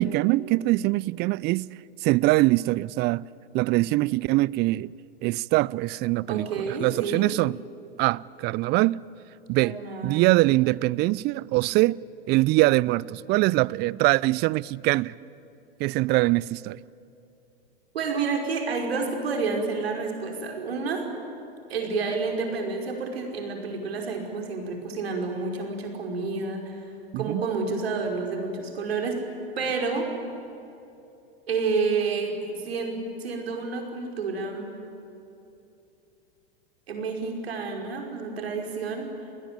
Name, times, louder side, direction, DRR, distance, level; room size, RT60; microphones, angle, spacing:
voice 1, 0.0-1.7 2.0-3.3 3.5-4.9 5.2-7.6 8.0-9.0 9.5-9.8 10.0-12.0 12.3-15.1 15.8-16.8 27.1-27.4, right 20 dB, 35° right, 0.5 m, -23 dB
voice 2, 6.3-7.3 9.6-10.3 17.9-21.0 21.7-26.9 27.2-29.2 29.6-30.1 31.5-34.7 36.9-39.1, right 4 dB, 75° right, 5.4 m, -29 dB
30.0 x 20.5 x 8.8 m
hypercardioid pair, 100°, 31 cm